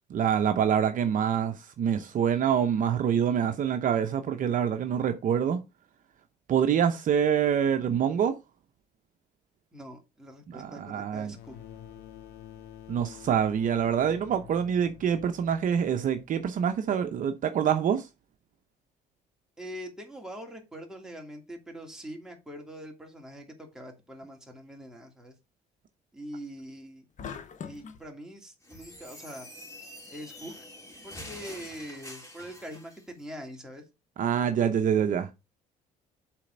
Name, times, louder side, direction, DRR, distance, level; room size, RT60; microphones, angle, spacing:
voice 1, 0.1-5.6 6.5-8.3 10.5-11.3 12.9-18.1 34.2-35.3, right 8 dB, 50° right, 0.8 m, -26 dB
voice 2, 9.7-11.6 19.6-25.3 26.1-27.1 27.6-29.5 30.1-30.5 31.0-33.8, equal, 5° right, 2.7 m, -43 dB
sound 1, 11.3-16.7, left 9 dB, 75° left, 2.1 m, -49 dB
sound 2, 27.2-28.0, left 7 dB, 45° left, 1.3 m, -40 dB
sound 3, 28.6-33.0, left 1 dB, 15° left, 3.0 m, -46 dB
7.5 x 4.2 x 5.1 m
cardioid pair, 110°, 17 cm